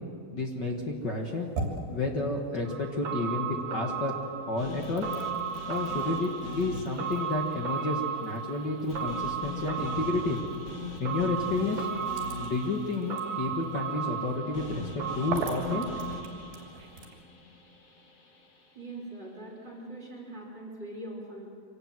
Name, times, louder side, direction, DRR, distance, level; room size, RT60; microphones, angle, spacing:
voice 1, 0.3-1.5 1.9-4.1 4.5-5.1 5.7-10.4 11.0-11.9 12.4-15.9 16.2-16.3, left 3 dB, 50° left, 1 dB, 1.3 m, -31 dB
sound 1, 1.0-3.6 4.0-17.2, right 3 dB, 70° right, 4.5 m, -44 dB
sound 2, 2.6-16.8 17.1-17.2, right 7 dB, 45° right, 1.8 m, -36 dB
sound 3, 4.6-18.7, left 3 dB, 70° left, 0.7 m, -43 dB
voice 2, 18.7-21.5, right 1 dB, 30° right, -3 dB, 3.9 m, -42 dB
25.5 x 18.0 x 7.7 m, 2.3 s
omnidirectional pair, 4.4 m